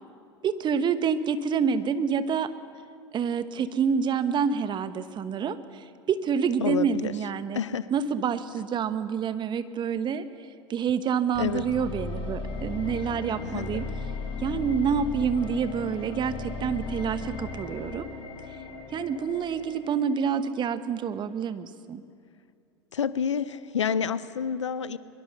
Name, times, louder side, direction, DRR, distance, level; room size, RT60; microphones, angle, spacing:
voice 1, 0.4-2.5 3.1-7.6 7.9-10.2 10.7-13.8 14.4-18.1 18.9-22.0, right 6 dB, 30° right, 12 dB, 1.1 m, -27 dB
voice 2, 6.6-7.2 7.5-7.9 11.4-11.7 13.4-13.8 22.9-25.0, left 7 dB, 80° left, 16 dB, 0.8 m, -29 dB
sound 1, 11.3-20.4, left 4 dB, 35° left, 4.8 m, -36 dB
22.5 x 22.0 x 6.7 m, 2.4 s
figure-of-eight pair, 85°, 15 cm